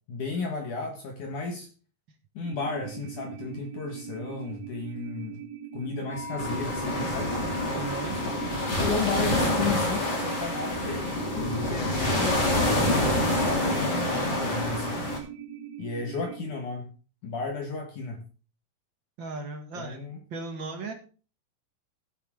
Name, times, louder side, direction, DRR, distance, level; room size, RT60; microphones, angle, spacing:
voice 1, 0.1-1.7 2.3-5.4 5.7-7.3 8.7-15.1 15.8-16.9 17.2-18.2 19.8-20.2, left 4 dB, 60° left, 4 dB, 2.5 m, -34 dB
sound 1, 2.4-16.4, right 10 dB, 65° right, 2.8 m, -42 dB
sound 2, 6.1-11.7, left 4 dB, 10° left, 2.3 m, -41 dB
sound 3, 6.4-15.2, left 1 dB, 25° left, 3.3 m, -27 dB
voice 2, 7.7-8.2 19.2-20.9, right 3 dB, 45° right, 3 dB, 1.6 m, -37 dB
15.5 x 8.5 x 3.7 m, 0.36 s
omnidirectional pair, 5.0 m